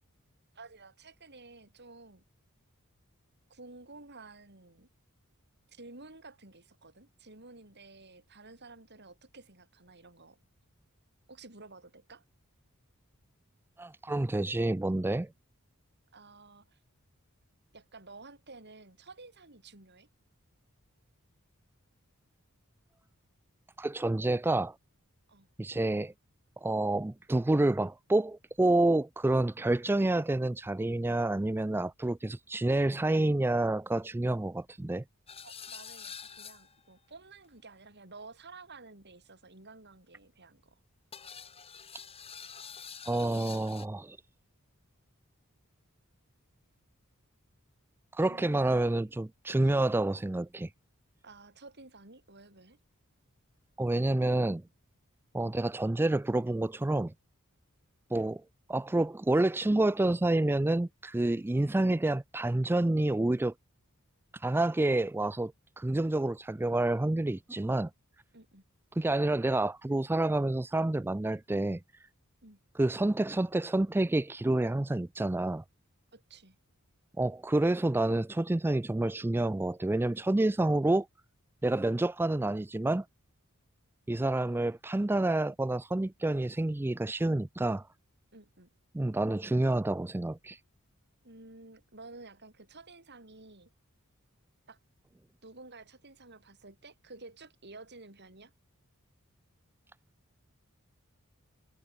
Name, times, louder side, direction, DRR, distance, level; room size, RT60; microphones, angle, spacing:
voice 1, 0.5-2.2 3.5-4.9 5.7-10.4 11.3-12.2 16.1-16.8 17.7-20.1 25.3-25.5 35.4-40.8 48.2-49.1 49.6-49.8 51.2-52.8 68.3-68.6 72.4-72.6 76.1-76.6 88.3-88.7 91.2-93.7 94.7-94.8 95.4-98.5, right 3 dB, 50° right, 7.6 m, -52 dB
voice 2, 13.8-15.3 23.8-24.8 25.6-26.1 26.6-35.0 43.1-44.2 48.1-50.7 53.8-54.6 55.3-57.1 58.1-58.4 58.7-63.5 64.3-67.9 69.0-71.8 72.8-75.6 77.2-81.1 81.6-83.1 84.1-87.9 88.9-90.6, right 2 dB, 10° right, 0.3 m, -28 dB
sound 1, 35.3-36.9 41.1-43.9, left 7 dB, 30° left, 2.8 m, -46 dB
head